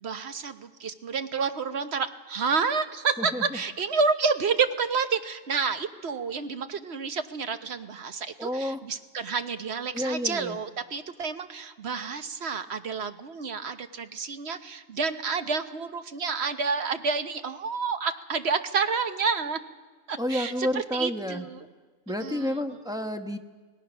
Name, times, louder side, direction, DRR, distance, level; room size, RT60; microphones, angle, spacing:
voice 1, 0.0-19.6 20.1-20.5 20.9-21.6 22.2-22.6, right 5 dB, 55° right, 9 dB, 1.2 m, -29 dB
voice 2, 3.2-3.6 8.4-8.8 9.9-10.6 20.2-21.5 22.1-23.4, equal, 5° right, 6 dB, 0.9 m, -30 dB
25.0 x 19.0 x 6.2 m, 1.4 s
omnidirectional pair, 1.4 m